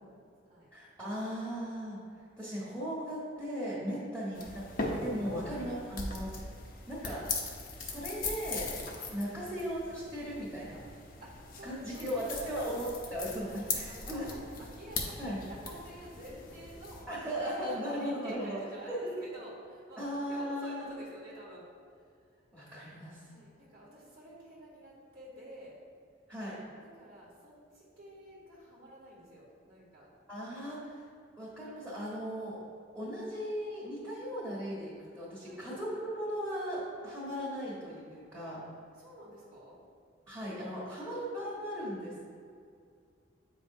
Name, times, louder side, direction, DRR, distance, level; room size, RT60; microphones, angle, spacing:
voice 1, 0.0-0.7 3.8-4.0 5.4-5.9 7.5-7.7 9.2-9.4 11.2-12.9 13.4-17.0 17.7-21.7 22.0-22.3 23.2-25.8 26.9-30.1 35.4-35.6 38.5-38.6 38.9-39.8, equal, 45° right, -7 dB, 1.2 m, -50 dB
voice 2, 0.7-2.0 2.4-6.5 6.9-7.2 7.8-8.8 9.1-10.8 11.6-14.3 15.2-15.4 17.1-18.6 18.9-19.1 20.0-20.9 22.5-23.3 26.3-26.6 30.3-31.0 31.4-32.6 32.9-38.6 40.3-42.2, equal, 10° right, -9 dB, 1.3 m, -37 dB
sound 1, 4.3-17.0, left 3 dB, 50° left, 0.8 m, -40 dB
7.8 x 5.1 x 2.7 m, 2.3 s
head